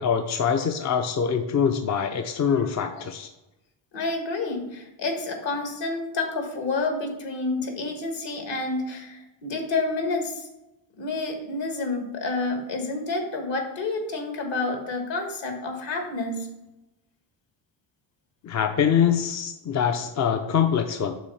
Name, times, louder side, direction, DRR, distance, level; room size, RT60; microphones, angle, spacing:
voice 1, 0.0-3.3 18.4-21.1, left 7 dB, 35° left, 5 dB, 0.5 m, -24 dB
voice 2, 3.9-10.5 11.0-16.5, left 3 dB, 60° left, 4 dB, 1.6 m, -29 dB
6.2 x 3.9 x 5.6 m, 0.95 s
cardioid pair, 125°, 49 cm